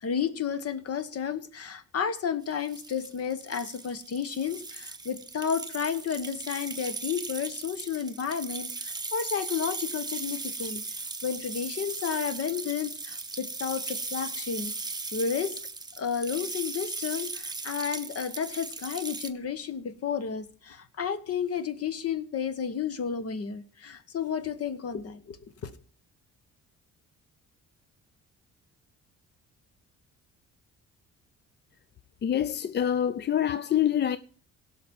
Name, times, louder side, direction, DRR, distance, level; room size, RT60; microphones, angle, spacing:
voice 1, 0.0-14.7 15.1-15.5 16.0-25.4 25.6-25.7, left 7 dB, 50° left, 1.2 m, -32 dB
sound 1, 2.5-19.3, right 3 dB, 15° right, 0.9 m, -37 dB
voice 2, 32.2-34.2, left 10 dB, 35° left, 0.4 m, -26 dB
16.5 x 6.0 x 5.3 m
cardioid pair, 90°, 30 cm